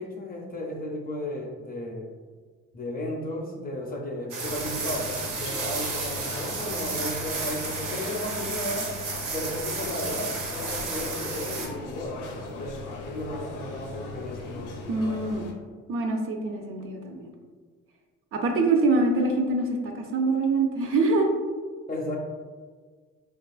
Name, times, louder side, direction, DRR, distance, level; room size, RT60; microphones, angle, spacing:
voice 1, 0.0-2.1 2.7-8.9 9.3-14.5 21.9-22.2, left 1 dB, 30° left, 0 dB, 0.4 m, -34 dB
sound 1, 4.3-11.7, right 3 dB, 90° right, 0.7 m, -32 dB
sound 2, 4.4-15.5, left 3 dB, 85° left, 0.5 m, -39 dB
voice 2, 14.9-15.5 15.9-17.3 18.3-21.3, right 3 dB, 50° right, 3 dB, 0.4 m, -24 dB
2.9 x 2.4 x 2.3 m, 1.6 s
cardioid pair, 90°, 30 cm